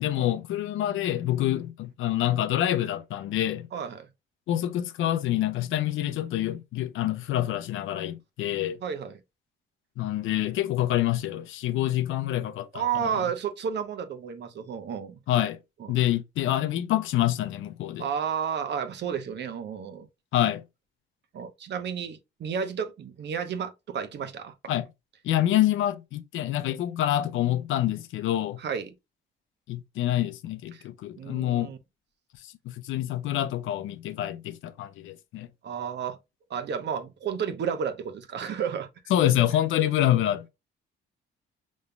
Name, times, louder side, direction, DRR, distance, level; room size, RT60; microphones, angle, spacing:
voice 1, 0.0-3.7 4.5-8.8 10.0-13.2 15.3-15.6 15.9-18.1 20.3-20.6 24.7-24.9 25.2-28.6 29.7-31.7 32.4-35.5 39.1-40.5, left 13 dB, 80° left, 0.6 m, -27 dB
voice 2, 3.7-4.1 8.8-9.1 12.7-15.2 15.8-15.9 18.0-20.1 21.3-24.5 28.6-28.9 30.7-30.8 31.1-31.8 35.6-36.2 36.5-38.9 39.8-39.9, right 7 dB, 60° right, 0.9 m, -32 dB
5.3 x 3.1 x 2.2 m
cardioid pair, 90°, 20 cm